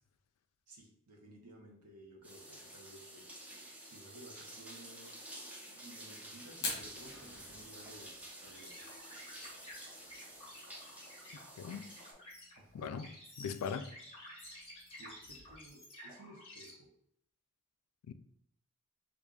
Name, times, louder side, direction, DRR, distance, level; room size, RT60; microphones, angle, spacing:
voice 1, 0.7-3.3 3.9-5.3 5.6-8.9 12.6-13.0 15.0-16.9, right 1 dB, 90° right, 0.8 m, -56 dB
sound 1, 2.2-12.1, right 1 dB, 5° right, 0.4 m, -51 dB
Fire, 6.5-15.7, left 3 dB, 50° left, 0.9 m, -49 dB
sound 2, 8.5-16.7, left 1 dB, 25° left, 1.1 m, -53 dB
voice 2, 11.6-11.9 12.7-13.1 13.4-14.0 18.1-18.2, left 6 dB, 85° left, 0.3 m, -39 dB
4.8 x 2.5 x 2.3 m
head